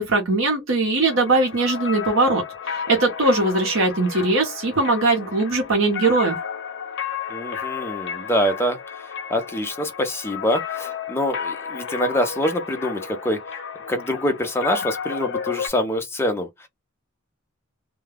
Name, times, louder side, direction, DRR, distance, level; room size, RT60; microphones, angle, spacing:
voice 1, 0.0-6.4, right 2 dB, 70° right, 0.9 m, -20 dB
sound 1, 1.0-15.7, left 7 dB, 60° left, 0.8 m, -32 dB
voice 2, 7.3-13.4 13.9-16.7, equal, 10° left, 0.6 m, -25 dB
2.3 x 2.3 x 3.3 m
head